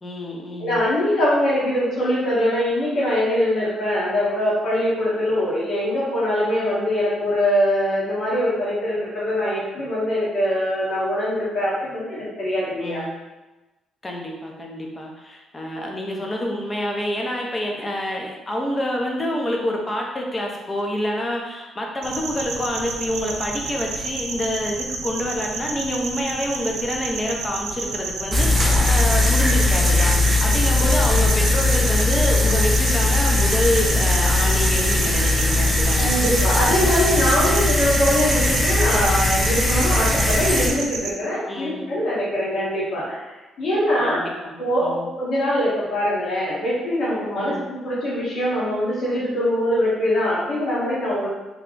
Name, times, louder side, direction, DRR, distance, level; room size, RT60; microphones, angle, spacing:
voice 1, 0.0-0.8 12.8-13.2 14.0-36.2 41.5-41.8 44.0-45.1 47.4-47.6, left 1 dB, 25° left, 0 dB, 0.8 m, -27 dB
voice 2, 0.6-13.0 36.0-44.2 44.6-51.3, equal, 60° left, -9 dB, 1.5 m, -23 dB
sound 1, 22.0-41.1, right 4 dB, 90° right, 0.4 m, -31 dB
sound 2, 28.3-40.7, left 2 dB, 10° right, 0.8 m, -19 dB
3.4 x 2.3 x 3.8 m, 1.1 s
cardioid pair, 90°, 0 cm